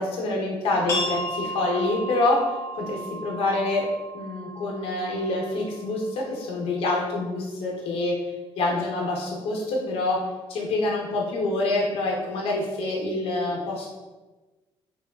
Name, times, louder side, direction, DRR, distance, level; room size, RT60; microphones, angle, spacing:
voice 1, 0.0-2.5 2.8-3.9 4.1-8.1 8.6-10.2 10.5-13.9, left 2 dB, 80° left, -2 dB, 0.7 m, -26 dB
sound 1, 0.9-6.3, right 1 dB, 25° left, 0.9 m, -34 dB
3.3 x 2.2 x 2.2 m, 1.2 s
cardioid pair, 170°, 10 cm